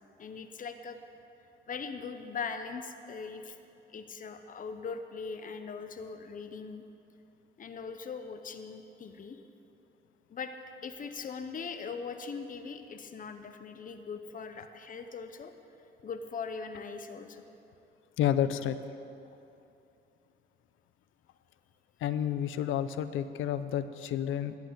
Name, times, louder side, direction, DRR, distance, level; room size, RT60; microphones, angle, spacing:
voice 1, 0.2-1.0 1.7-3.6 3.9-6.8 7.6-9.4 10.3-10.5 10.8-15.5 16.0-17.4 18.4-18.5, left 5 dB, 45° left, 8 dB, 0.9 m, -40 dB
voice 2, 18.2-18.8 22.0-24.6, left 10 dB, 85° left, 13 dB, 0.6 m, -30 dB
11.5 x 8.4 x 7.9 m, 2.8 s
cardioid pair, 90°, 20 cm